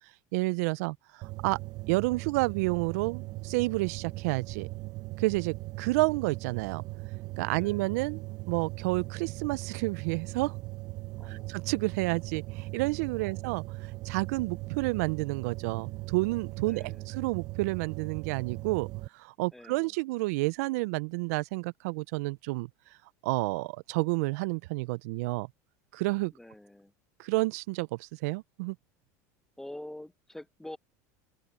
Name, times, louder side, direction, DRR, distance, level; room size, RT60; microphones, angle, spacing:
voice 1, 0.3-1.6 1.9-4.7 5.2-6.8 7.4-10.5 11.2-18.9 19.1-22.7 23.2-25.5 25.9-26.3 27.2-28.8, right 23 dB, 75° right, 0.4 m, -30 dB
sound 1, 1.2-19.1, right 21 dB, 50° right, 0.9 m, -39 dB
voice 2, 7.5-7.9 11.2-11.5 13.2-13.5 16.6-17.1 19.5-19.9 26.3-26.9 29.6-30.8, left 1 dB, 5° left, 1.0 m, -46 dB
open air
supercardioid pair, 115°, 8 cm